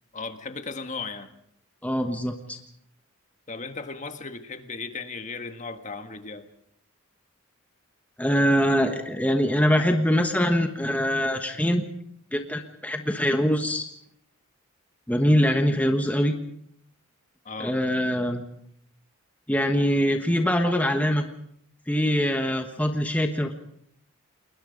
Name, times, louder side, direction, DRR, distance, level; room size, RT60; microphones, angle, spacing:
voice 1, 0.1-1.3 3.5-6.5 17.4-17.8, left 4 dB, 35° left, 8 dB, 1.6 m, -36 dB
voice 2, 1.8-2.6 8.2-11.8 12.3-13.9 15.1-16.3 17.6-18.4 19.5-21.2 21.9-23.5, equal, 5° left, 5 dB, 1.3 m, -23 dB
29.5 x 21.0 x 5.3 m, 0.68 s
head